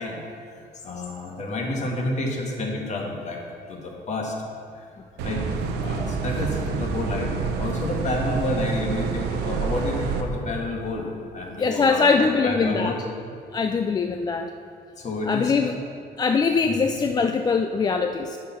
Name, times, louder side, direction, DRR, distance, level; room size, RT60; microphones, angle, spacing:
voice 1, 0.0-3.4 3.7-4.3 4.7-4.9 5.2-5.4 5.8-11.1 11.3-13.0 15.0-15.8 16.7-16.8, left 2 dB, 45° left, 0 dB, 1.6 m, -30 dB
sound 1, 5.2-10.2, right 5 dB, 85° right, 0.8 m, -28 dB
voice 2, 11.6-13.0 13.5-14.5 15.3-15.7 16.2-18.4, left 4 dB, 25° left, 6 dB, 0.3 m, -22 dB
9.5 x 4.7 x 5.7 m, 2.3 s
cardioid pair, 110°, 17 cm